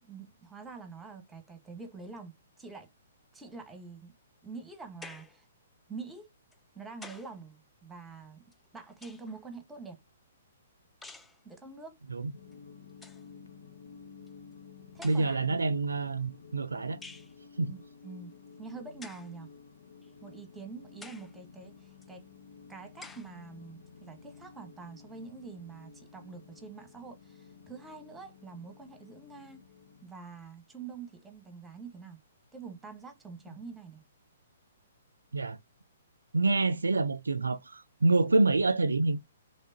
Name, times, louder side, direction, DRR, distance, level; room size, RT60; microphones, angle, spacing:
voice 1, 0.1-2.9 3.3-4.1 4.4-5.5 5.9-6.3 6.7-8.4 8.7-10.0 11.4-12.0 14.9-15.6 17.6-18.3 18.6-19.5 20.2-22.3 22.7-29.6 30.0-32.2 32.5-34.0, right 4 dB, 10° right, 1.2 m, -46 dB
sound 1, 5.0-5.4 6.5-7.4 8.5-9.4 11.0-11.4 12.5-12.6 12.9-13.3 14.3-14.4 15.0-15.5 17.0-17.3 19.0-19.3 20.0-20.1 21.0-21.4 22.0-22.1 23.0-23.3, left 3 dB, 10° left, 0.5 m, -49 dB
sound 2, 12.3-30.0, left 5 dB, 75° left, 0.8 m, -53 dB
voice 2, 15.0-17.0 17.6-17.7 35.3-35.6 36.3-39.2, right 3 dB, 85° right, 0.3 m, -27 dB
3.6 x 3.3 x 2.7 m
figure-of-eight pair, 125°, 0 cm